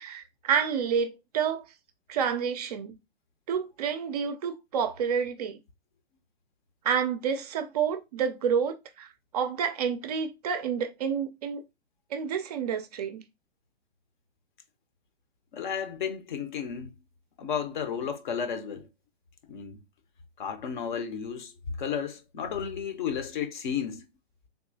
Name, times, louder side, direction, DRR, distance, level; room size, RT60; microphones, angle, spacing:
voice 1, 0.0-1.7 2.1-3.0 3.5-5.6 6.8-9.1 9.3-11.6 12.1-13.2, right 7 dB, 40° right, 0.4 m, -29 dB
voice 2, 15.5-17.0 17.4-18.9 19.5-19.8 20.4-21.5 21.8-24.1, left 7 dB, 50° left, 0.6 m, -33 dB
3.6 x 2.8 x 2.6 m
figure-of-eight pair, 120°, 32 cm